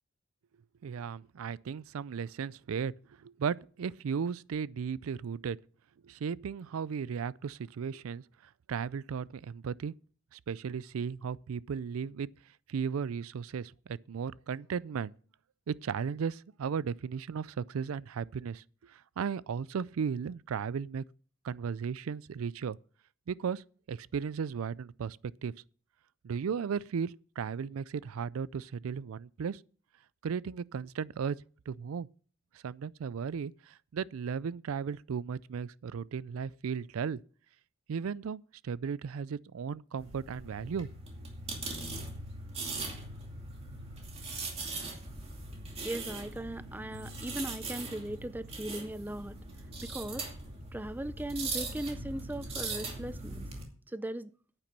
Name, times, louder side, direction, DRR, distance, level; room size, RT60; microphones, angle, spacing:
voice 1, 0.8-5.6 6.0-8.2 8.7-9.9 10.3-12.3 12.7-15.1 15.7-21.0 21.4-22.8 23.3-25.5 26.2-29.6 30.2-31.4 31.7-32.1 32.6-37.2 37.9-40.9, right 6 dB, 85° right, 0.4 m, -35 dB
sound 1, 40.0-53.6, right 3 dB, 30° right, 2.4 m, -40 dB
voice 2, 45.8-49.4 49.8-50.3 50.7-53.5 53.9-54.3, right 1 dB, 10° right, 0.4 m, -38 dB
10.0 x 9.0 x 5.4 m
head